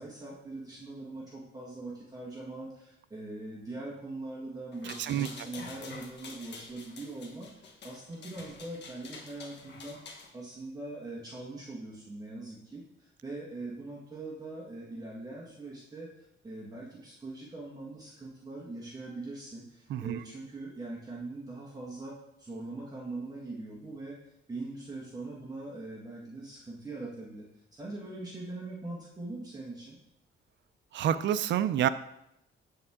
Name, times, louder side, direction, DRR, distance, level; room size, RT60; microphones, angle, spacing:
voice 1, 0.0-16.1 16.4-22.1 22.4-24.2 24.5-27.4 27.7-30.0, right 2 dB, 20° right, -5 dB, 1.5 m, -42 dB
sound 1, 4.7-10.3, left 4 dB, 55° left, 1.2 m, -47 dB
voice 2, 19.9-20.2 30.9-31.9, right 10 dB, 60° right, 12 dB, 0.4 m, -28 dB
7.7 x 7.1 x 3.6 m, 0.80 s
cardioid pair, 145°, 21 cm